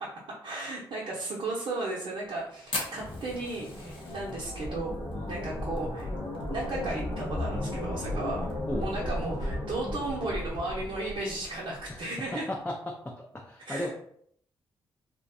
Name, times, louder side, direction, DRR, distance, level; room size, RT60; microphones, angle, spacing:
voice 1, 0.0-5.0 5.3-6.1 6.5-8.4 8.8-12.5 13.6-13.9, right 2 dB, 60° right, -4 dB, 0.6 m, -35 dB
Fire, 2.7-7.2 7.5-7.6 7.8-7.9 8.3-8.7 9.2-9.3 10.4-10.5, left 2 dB, 60° left, 1.0 m, -39 dB
sound 1, 2.8-12.0, left 1 dB, 75° left, 0.6 m, -35 dB
voice 2, 13.3-13.9, left 1 dB, 15° left, 0 dB, 0.4 m, -35 dB
2.5 x 2.1 x 2.6 m, 0.66 s
supercardioid pair, 45°, 10 cm